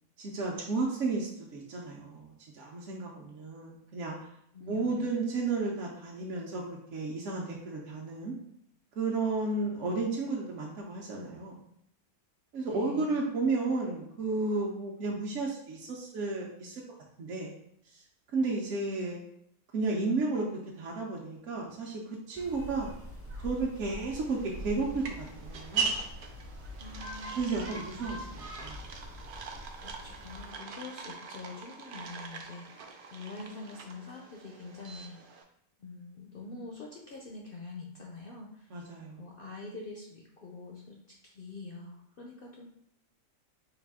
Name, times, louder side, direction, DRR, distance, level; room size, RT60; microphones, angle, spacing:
voice 1, 0.2-4.2 4.7-6.6 6.9-8.3 9.0-11.5 12.5-16.8 17.2-17.5 17.9-18.0 18.3-19.2 19.7-20.5 20.8-22.9 23.4-26.0 27.4-28.8 38.7-39.2, right 3 dB, 60° right, -3 dB, 0.9 m, -33 dB
voice 2, 4.5-5.2 12.7-13.3 18.5-18.9 26.8-27.7 29.8-35.2 35.8-38.8 39.2-42.7, left 3 dB, 65° left, -1 dB, 0.5 m, -45 dB
sound 1, 22.3-30.5, equal, 15° right, 0.4 m, -44 dB
sound 2, 24.2-35.4, right 4 dB, 90° right, 0.4 m, -41 dB
4.8 x 2.4 x 3.5 m, 0.72 s
omnidirectional pair, 1.5 m